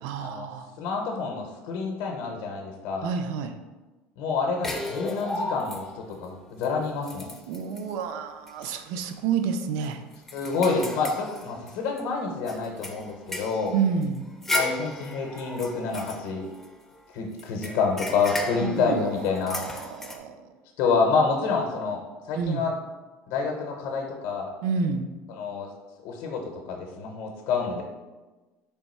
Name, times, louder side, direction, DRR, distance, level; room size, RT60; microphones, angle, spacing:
voice 1, 0.0-0.7 3.0-3.5 7.5-10.0 13.7-14.3 18.6-19.1 19.5-20.4 22.4-22.6 24.6-25.1, right 6 dB, 70° right, 7 dB, 0.4 m, -29 dB
voice 2, 0.8-3.1 4.2-7.3 10.3-13.7 14.5-16.4 17.1-19.6 20.8-22.0 22.3-22.7 23.3-24.5 25.3-25.7 26.0-27.8, left 4 dB, 70° left, 1 dB, 0.6 m, -28 dB
sound 1, 4.6-6.1 6.6-6.7 7.0-7.9 8.5-8.7 9.0-9.1 9.6-12.0 12.5-16.9 17.4-20.2, left 1 dB, 5° left, 0.4 m, -34 dB
3.4 x 2.7 x 4.2 m, 1.2 s
cardioid pair, 155°, 5 cm